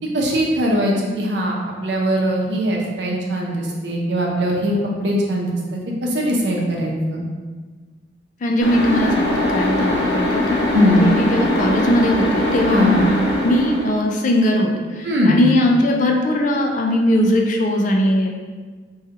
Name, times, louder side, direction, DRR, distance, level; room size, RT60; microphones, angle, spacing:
voice 1, 0.1-4.7 5.0-5.6 6.0-7.2 10.7-11.1 12.7-13.0 15.0-15.4, equal, 75° right, -2 dB, 0.7 m, -20 dB
voice 2, 8.4-10.6 11.0-18.3, left 1 dB, 45° left, 1 dB, 0.4 m, -19 dB
sound 1, 8.6-14.0, left 1 dB, 80° left, 0.8 m, -21 dB
4.6 x 2.3 x 2.9 m, 1.4 s
head